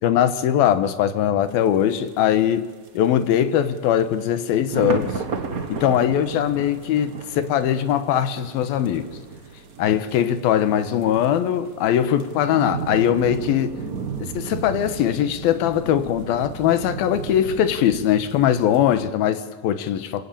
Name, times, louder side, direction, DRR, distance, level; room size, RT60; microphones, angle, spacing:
voice 1, 0.0-2.7 2.9-5.1 5.7-9.1 9.8-13.8 14.2-20.3, left 10 dB, 90° left, 11 dB, 3.1 m, -21 dB
sound 1, 1.5-1.6 2.1-2.2 2.9-3.2 3.8-19.0, right 5 dB, 85° right, 0.7 m, -34 dB
25.0 x 25.0 x 8.7 m, 1.3 s
omnidirectional pair, 4.1 m